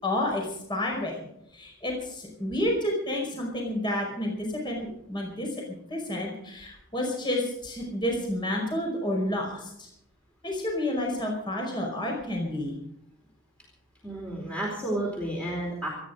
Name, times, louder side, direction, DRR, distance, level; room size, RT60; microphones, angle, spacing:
voice 1, 0.0-1.2 1.5-4.8 5.1-5.5 5.9-9.9 10.4-12.8, left 1 dB, 20° left, 0 dB, 5.0 m, -30 dB
voice 2, 14.0-15.9, right 1 dB, 5° left, -3 dB, 4.1 m, -31 dB
27.0 x 10.5 x 5.1 m, 0.76 s
head